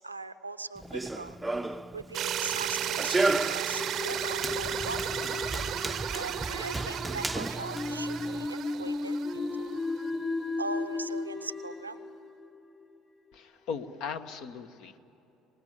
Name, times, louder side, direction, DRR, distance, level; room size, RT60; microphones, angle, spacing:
voice 1, 0.0-1.4 1.9-5.1 6.1-9.8 10.6-12.0, right 3 dB, 85° right, 12 dB, 0.6 m, -40 dB
Run, 0.8-8.5, right 2 dB, 10° right, 0.6 m, -34 dB
sound 1, 2.1-10.1, right 11 dB, 45° right, 0.7 m, -35 dB
sound 2, 3.7-13.0, left 3 dB, 25° left, 3.2 m, -36 dB
voice 2, 13.3-15.0, left 6 dB, 55° left, 9 dB, 1.2 m, -38 dB
25.0 x 19.5 x 9.4 m, 3.0 s
figure-of-eight pair, 60°, 0 cm